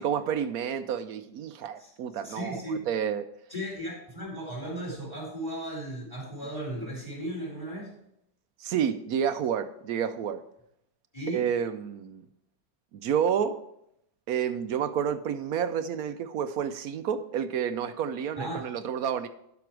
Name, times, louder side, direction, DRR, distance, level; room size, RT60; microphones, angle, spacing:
voice 1, 0.0-3.3 8.6-10.4 11.3-12.2 12.9-13.6 14.3-19.3, right 8 dB, 70° right, 10 dB, 1.0 m, -30 dB
voice 2, 2.2-2.9 3.5-7.9 11.1-11.5 18.4-18.7, right 1 dB, 15° left, -2 dB, 4.2 m, -36 dB
12.0 x 6.0 x 4.6 m, 0.77 s
omnidirectional pair, 1.8 m